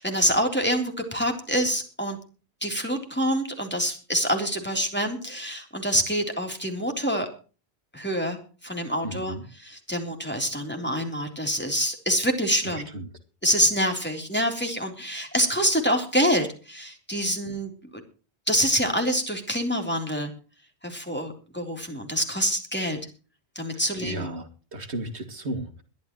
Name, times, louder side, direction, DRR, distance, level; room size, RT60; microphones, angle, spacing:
voice 1, 0.0-2.2 2.6-7.3 7.9-8.4 8.6-9.3 9.6-12.9 13.4-17.7 18.5-20.3 20.8-23.0 23.5-24.3, equal, 10° left, 3 dB, 3.5 m, -26 dB
voice 2, 9.0-9.5 12.6-13.1 23.7-25.8, right 2 dB, 85° right, 7 dB, 2.8 m, -35 dB
21.5 x 13.0 x 3.1 m, 0.36 s
omnidirectional pair, 1.1 m